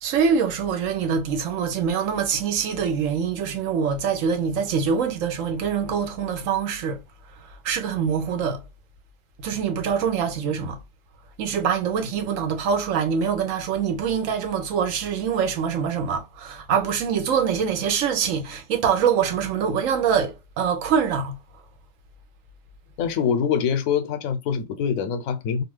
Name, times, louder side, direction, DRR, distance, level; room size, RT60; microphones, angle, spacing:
voice 1, 0.0-7.0 7.4-8.6 9.4-10.8 11.4-21.4, right 7 dB, 80° right, 1.0 m, -24 dB
voice 2, 23.0-25.6, left 7 dB, 90° left, 1.0 m, -24 dB
2.6 x 2.4 x 3.1 m
omnidirectional pair, 1.4 m